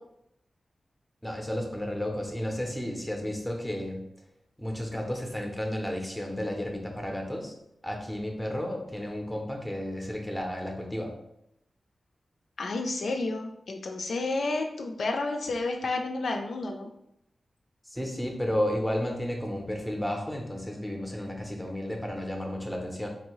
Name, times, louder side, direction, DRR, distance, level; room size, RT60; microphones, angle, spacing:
voice 1, 1.2-4.0 4.6-7.5 7.8-11.1 17.9-23.1, left 1 dB, ahead, 1 dB, 0.6 m, -32 dB
voice 2, 12.6-16.9, left 2 dB, 70° left, 3 dB, 0.4 m, -31 dB
4.0 x 2.6 x 3.0 m, 0.79 s
wide cardioid pair, 145°, 0 cm